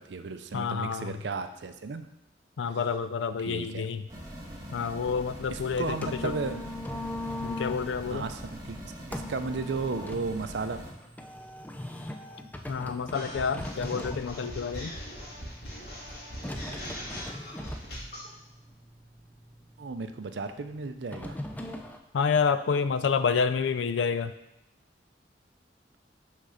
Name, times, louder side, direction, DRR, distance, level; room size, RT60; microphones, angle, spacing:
voice 1, 0.0-2.0 3.4-3.9 5.5-6.6 8.1-8.8 9.1-10.8 19.8-21.3, right 4 dB, 70° right, 9 dB, 0.5 m, -34 dB
voice 2, 0.5-1.1 2.6-4.0 4.7-6.0 6.2-6.3 7.4-8.2 12.7-14.9 22.1-24.3, left 5 dB, 85° left, 12 dB, 0.4 m, -28 dB
sound 1, 4.1-10.9, equal, 20° right, 1.4 m, -43 dB
sound 2, 5.8-22.0, left 1 dB, 10° left, 0.4 m, -41 dB
sound 3, 13.1-18.3, equal, 60° left, 1.9 m, -40 dB
6.3 x 3.7 x 5.6 m, 0.92 s
head